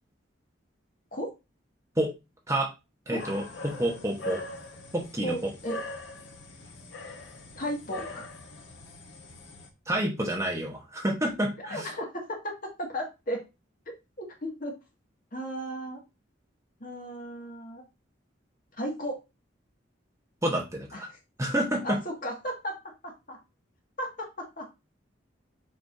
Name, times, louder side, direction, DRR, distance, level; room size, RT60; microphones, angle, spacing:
voice 1, 3.1-4.4 4.9-5.5 9.9-11.9 20.4-21.1 21.4-22.0, right 1 dB, 15° right, 1 dB, 1.2 m, -29 dB
sound 1, 3.2-9.7, left 2 dB, 70° left, 1.3 m, -42 dB
voice 2, 5.2-5.8 7.6-8.3 11.7-13.4 14.2-14.8 15.3-16.0 16.8-17.8 18.8-19.2 20.9-21.2 21.8-22.8 23.0-23.4 24.0-24.7, equal, 45° left, 0 dB, 2.1 m, -35 dB
6.8 x 5.3 x 2.7 m, 0.25 s
head